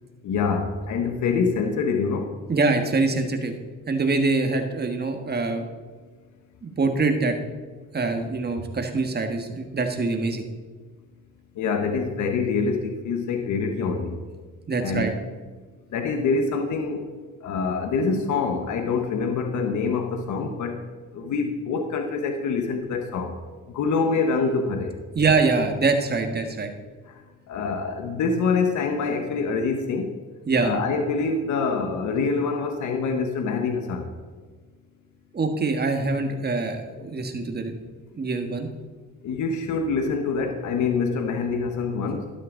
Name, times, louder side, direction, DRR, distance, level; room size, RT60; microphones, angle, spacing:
voice 1, 0.2-2.3 11.5-14.2 14.8-15.1 15.9-17.1 17.4-20.8 21.1-23.4 23.7-25.0 27.1-27.2 27.5-30.1 30.6-34.1 37.0-37.1 39.2-42.3, left 4 dB, 75° left, 5 dB, 1.2 m, -25 dB
voice 2, 2.5-3.5 3.9-5.6 6.6-7.3 7.9-10.4 14.7-15.1 25.1-26.7 30.5-30.7 35.3-37.7 38.1-38.7, right 3 dB, 35° right, 5 dB, 1.6 m, -24 dB
12.0 x 11.5 x 3.9 m, 1.4 s
cardioid pair, 90°, 30 cm